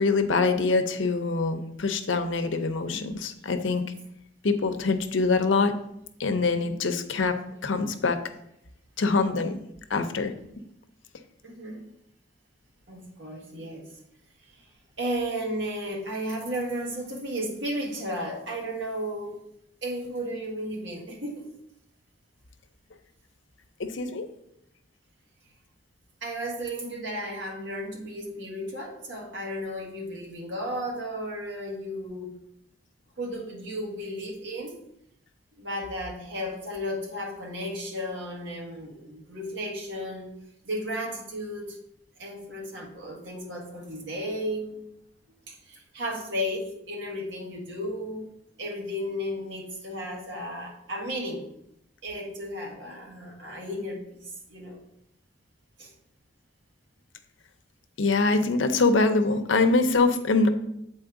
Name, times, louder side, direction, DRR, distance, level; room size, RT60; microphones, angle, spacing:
voice 1, 0.0-3.8 4.4-5.7 6.2-7.4 7.6-8.2 9.0-9.6 9.9-10.3 23.8-24.3 58.0-60.5, left 3 dB, 85° left, 8 dB, 0.7 m, -24 dB
voice 2, 11.4-11.8 12.9-14.0 14.4-14.6 15.0-19.4 19.8-21.5 26.2-32.3 33.2-34.8 35.6-40.3 40.6-41.8 42.2-44.8 45.5-48.3 48.6-51.4 52.0-54.8 55.8-55.9, equal, 75° right, -1 dB, 1.5 m, -34 dB
7.9 x 4.2 x 3.7 m, 0.77 s
head